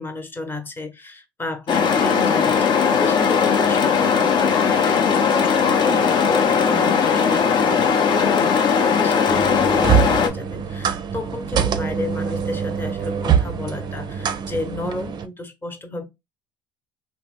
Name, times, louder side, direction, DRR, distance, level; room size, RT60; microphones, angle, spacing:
voice 1, 0.0-16.0, left 2 dB, 20° left, 0.9 m, -32 dB
sound 1, 1.7-10.3, left 6 dB, 45° left, 0.6 m, -18 dB
sound 2, 9.3-15.3, right 8 dB, 40° right, 0.5 m, -24 dB
2.8 x 2.0 x 3.5 m
hypercardioid pair, 75°, 11 cm